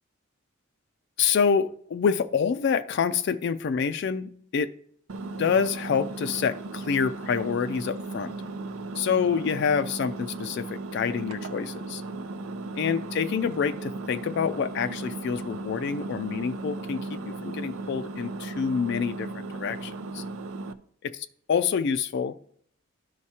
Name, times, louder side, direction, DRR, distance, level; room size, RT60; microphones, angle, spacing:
voice 1, 1.2-4.7 5.4-8.3 9.0-12.0 12.8-20.2 21.5-22.4, left 6 dB, 55° left, 9 dB, 0.3 m, -27 dB
Engine, 5.1-20.7, right 3 dB, 85° right, 0.5 m, -36 dB
13.0 x 4.8 x 2.8 m, 0.62 s
head